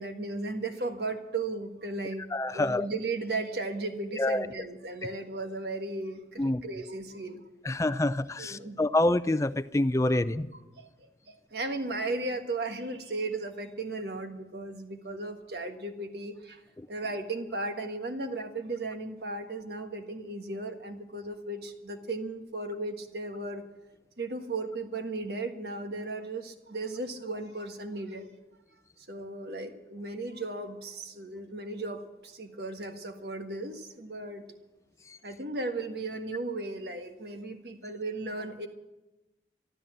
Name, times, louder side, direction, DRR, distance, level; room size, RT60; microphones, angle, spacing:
voice 1, 0.0-7.4 8.4-8.8 10.0-10.2 10.8-16.6 16.9-23.6 24.2-28.3 29.0-34.6 35.2-38.7, right 2 dB, 65° right, 6 dB, 1.5 m, -36 dB
voice 2, 2.3-2.9 4.2-4.5 6.4-6.6 7.6-10.5 16.8-16.9, left 1 dB, 15° left, 15 dB, 0.4 m, -27 dB
13.0 x 12.5 x 7.6 m, 1.0 s
head